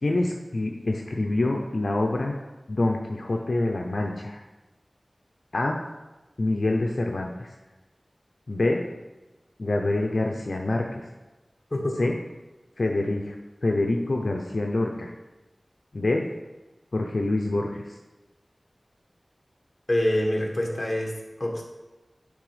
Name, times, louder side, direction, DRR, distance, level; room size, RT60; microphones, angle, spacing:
voice 1, 0.0-2.4 2.7-4.4 5.5-5.8 6.4-7.6 8.5-8.8 9.6-11.0 12.0-12.2 12.8-13.4 13.6-15.1 15.9-16.3 16.9-18.0, left 2 dB, 65° left, 1 dB, 0.6 m, -26 dB
voice 2, 19.9-21.1 21.4-21.6, left 1 dB, 30° left, 0 dB, 1.6 m, -25 dB
10.0 x 3.5 x 5.0 m, 1.1 s
wide cardioid pair, 70°, 0 cm